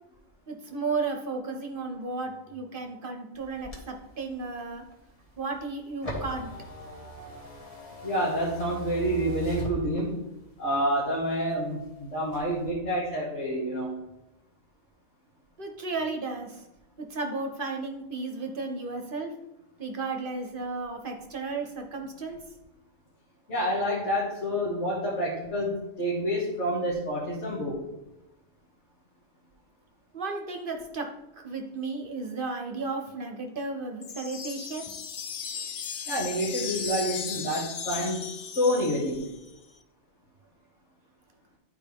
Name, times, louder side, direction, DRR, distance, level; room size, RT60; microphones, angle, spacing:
voice 1, 0.5-4.8 5.4-6.5 15.6-16.6 17.0-19.3 19.8-22.4 30.1-31.1 31.4-34.8 35.5-35.7, right 3 dB, 55° right, 3 dB, 0.9 m, -34 dB
sound 1, 3.3-10.4 10.9-11.9 12.2-12.7, right 2 dB, 30° left, 1.6 m, -40 dB
voice 2, 8.0-10.2 10.6-13.9 23.5-27.8 36.1-38.2 38.6-39.3, equal, 80° left, -8 dB, 2.2 m, -28 dB
sound 2, 34.0-39.5, left 6 dB, 50° left, 0.5 m, -36 dB
11.0 x 4.5 x 3.5 m, 0.93 s
omnidirectional pair, 1.2 m